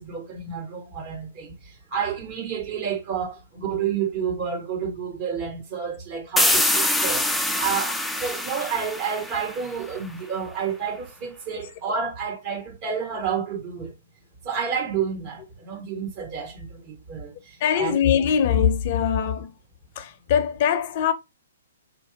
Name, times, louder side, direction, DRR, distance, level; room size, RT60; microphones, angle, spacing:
voice 1, 0.0-7.3 7.6-13.9 14.4-18.0, right 7 dB, 45° right, 2.1 m, -30 dB
sound 1, 6.4-10.0, left 1 dB, ahead, 0.4 m, -24 dB
voice 2, 17.6-19.5 20.0-21.1, left 8 dB, 45° left, 0.6 m, -22 dB
4.2 x 3.2 x 2.8 m
hypercardioid pair, 135°, 0 cm